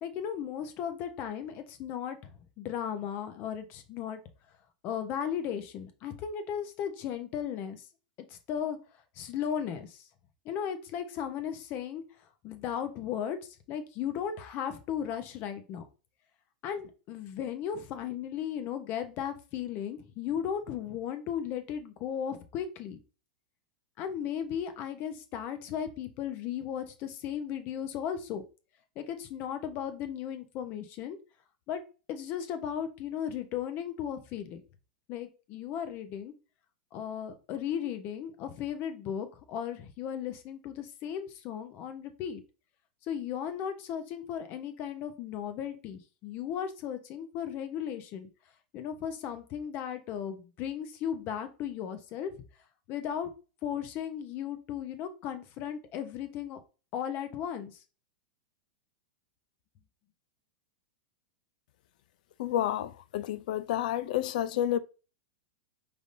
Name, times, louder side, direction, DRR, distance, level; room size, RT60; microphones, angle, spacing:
voice 1, 0.0-4.2 4.8-7.8 8.3-8.8 9.1-10.1 10.4-12.0 12.4-15.8 16.6-23.0 24.0-28.4 29.0-31.2 31.7-31.8 32.1-34.6 35.1-36.3 36.9-42.4 43.0-48.3 48.7-52.3 52.9-53.3 53.6-56.6 56.9-57.8, left 9 dB, 45° left, 0.9 m, -36 dB
voice 2, 62.4-64.8, left 11 dB, 60° left, 0.4 m, -30 dB
5.1 x 3.4 x 2.6 m
hypercardioid pair, 100°, 5 cm